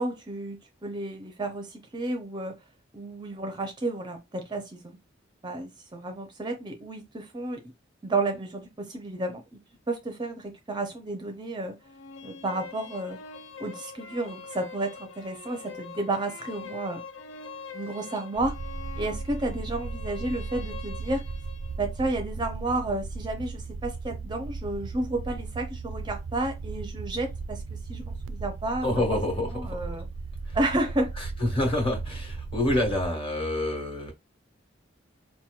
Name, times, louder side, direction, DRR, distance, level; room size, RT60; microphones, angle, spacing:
voice 1, 0.0-2.6 2.9-5.0 5.4-7.6 8.0-9.6 9.9-11.8 12.2-13.2 13.6-17.0 17.7-18.6 19.0-21.2 21.8-29.0 29.5-30.1 30.5-31.1, right 2 dB, 25° right, 0.5 m, -31 dB
sound 1, 11.8-21.8, left 5 dB, 75° left, 0.5 m, -44 dB
sound 2, 18.4-33.1, right 4 dB, 80° right, 0.4 m, -36 dB
voice 2, 28.8-29.8 30.5-30.6 31.2-34.1, left 1 dB, 30° left, 1.3 m, -27 dB
4.4 x 2.9 x 2.3 m
head